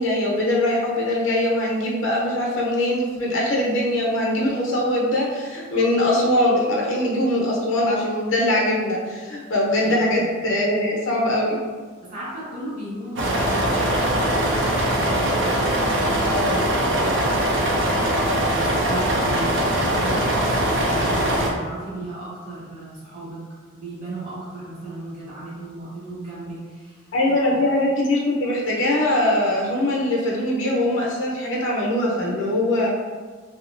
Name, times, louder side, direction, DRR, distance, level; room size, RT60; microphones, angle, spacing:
voice 1, 0.0-11.6 16.3-16.7 27.1-32.9, left 1 dB, 70° left, -3 dB, 0.7 m, -22 dB
voice 2, 9.8-10.3 12.0-18.0 18.3-27.7, right 2 dB, 45° right, -9 dB, 1.4 m, -36 dB
sound 1, 13.2-21.5, right 1 dB, 65° right, 0.5 m, -21 dB
2.8 x 2.7 x 2.5 m, 1.5 s
head